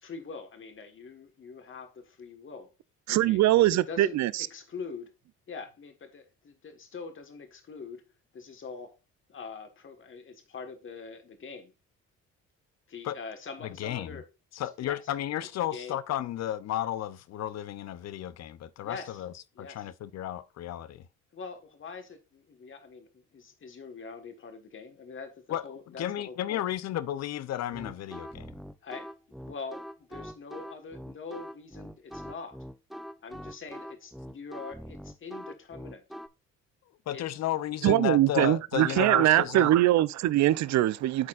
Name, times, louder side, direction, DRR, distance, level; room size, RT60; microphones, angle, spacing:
voice 1, 0.0-2.7 3.2-5.1 5.5-8.1 8.3-9.0 9.3-11.7 12.9-14.3 14.8-15.0 15.7-16.0 18.8-19.2 19.5-19.9 21.3-26.6 28.8-29.1 29.4-32.6 33.2-36.0 37.1-37.2, left 5 dB, 40° left, 1.5 m, -43 dB
voice 2, 3.1-4.5 37.8-41.3, right 14 dB, 60° right, 0.5 m, -22 dB
voice 3, 13.6-14.2 14.5-21.0 25.5-28.5 37.1-39.7, left 12 dB, 55° left, 0.6 m, -33 dB
sound 1, 27.7-36.3, equal, ahead, 0.4 m, -43 dB
12.0 x 4.2 x 2.4 m
supercardioid pair, 75°, 32 cm